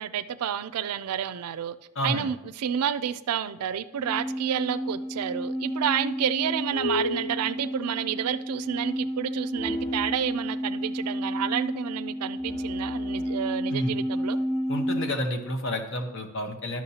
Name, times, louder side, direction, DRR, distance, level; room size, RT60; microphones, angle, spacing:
voice 1, 0.0-1.8 2.0-14.4, right 9 dB, 85° right, 0.4 m, -30 dB
voice 2, 1.9-2.3 13.7-14.0 14.7-16.8, left 1 dB, 55° left, 1.0 m, -30 dB
sound 1, 4.0-15.2, equal, 15° left, 0.3 m, -31 dB
12.5 x 6.0 x 2.8 m
head